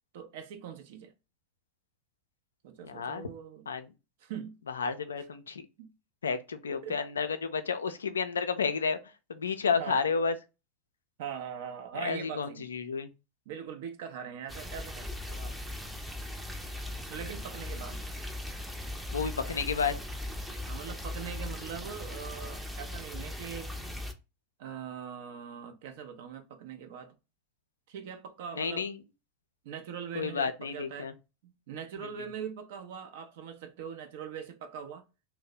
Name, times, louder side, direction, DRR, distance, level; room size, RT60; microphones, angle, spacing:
voice 1, 0.1-1.1 2.6-3.7 4.2-4.6 5.8-5.9 6.8-7.0 9.8-10.0 11.2-12.7 13.5-15.6 17.1-18.0 20.7-23.7 24.6-27.2 27.9-28.9 29.6-31.1 31.4-35.0, right 8 dB, 60° right, 0.5 m, -41 dB
voice 2, 2.8-3.3 3.7-3.9 4.7-5.7 6.2-9.0 9.3-10.3 11.9-13.1 19.1-20.0 28.6-29.0 30.1-31.1, left 5 dB, 80° left, 0.4 m, -31 dB
sound 1, 14.5-24.1, left 1 dB, 5° right, 0.5 m, -39 dB
2.7 x 2.0 x 3.9 m
figure-of-eight pair, 85°, 0 cm